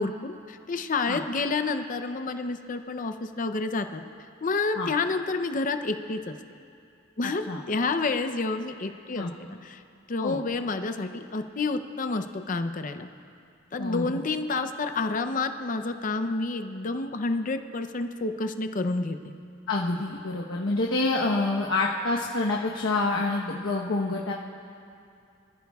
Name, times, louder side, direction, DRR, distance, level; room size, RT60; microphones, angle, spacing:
voice 1, 0.0-4.0 4.4-6.3 7.2-9.8 10.1-13.1 13.7-19.3, left 3 dB, 40° left, 8 dB, 0.6 m, -29 dB
voice 2, 7.2-7.6 9.1-9.3 10.2-10.4 13.8-14.2 19.7-24.3, left 2 dB, 85° left, -3 dB, 1.0 m, -27 dB
25.0 x 14.5 x 2.4 m, 2.5 s
head